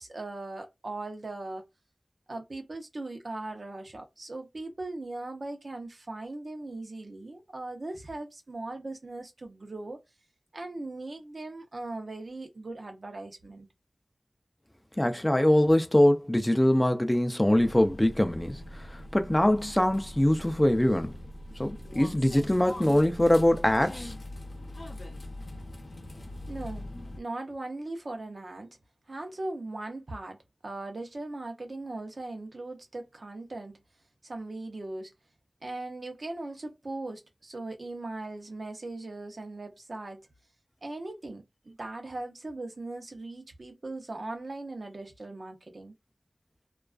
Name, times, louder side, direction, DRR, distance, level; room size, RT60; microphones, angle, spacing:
voice 1, 0.0-1.6 2.3-10.0 10.5-13.7 26.5-26.9 27.2-28.7 29.1-30.4 30.6-33.8 34.2-35.1 35.6-40.3 40.8-45.9, right 2 dB, 70° right, 0.6 m, -39 dB
voice 2, 15.0-18.6 19.1-21.1 21.6-24.1, left 1 dB, 20° left, 0.3 m, -23 dB
sound 1, 17.5-27.2, left 1 dB, 70° left, 0.6 m, -42 dB
2.3 x 2.2 x 2.4 m
wide cardioid pair, 55°, 0 cm